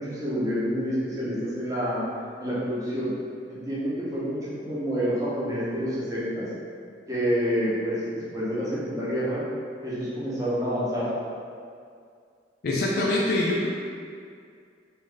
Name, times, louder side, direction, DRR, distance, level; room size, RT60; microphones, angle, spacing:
voice 1, 0.0-2.0 2.4-3.1 3.5-6.5 7.1-9.4 9.8-11.1, equal, 20° right, -10 dB, 0.9 m, -28 dB
voice 2, 12.6-13.7, left 1 dB, 60° left, -4 dB, 0.4 m, -24 dB
3.1 x 2.4 x 3.7 m, 2.2 s
head